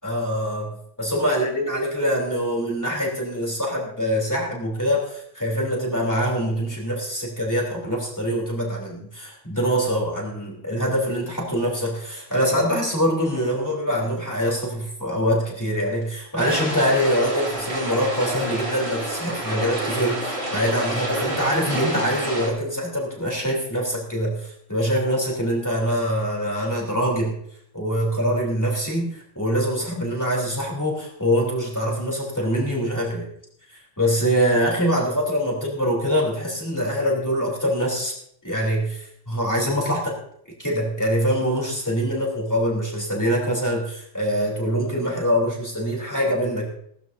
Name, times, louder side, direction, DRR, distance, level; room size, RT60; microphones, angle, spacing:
voice 1, 0.0-27.3 27.7-33.2 33.7-38.1 38.4-40.2 40.6-46.7, equal, 15° left, -3 dB, 3.4 m, -24 dB
sound 1, 16.4-22.5, right 1 dB, 55° right, 3.5 m, -29 dB
18.5 x 13.0 x 2.7 m, 0.69 s
omnidirectional pair, 1.3 m